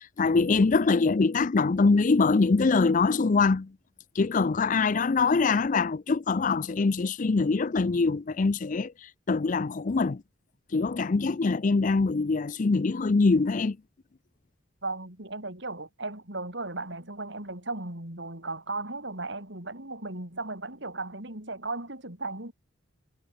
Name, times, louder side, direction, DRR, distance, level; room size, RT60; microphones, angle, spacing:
voice 1, 0.0-3.7 4.1-10.2 10.7-13.8, left 4 dB, 40° left, 0.5 m, -24 dB
voice 2, 14.8-22.5, right 2 dB, 60° right, 5.9 m, -36 dB
head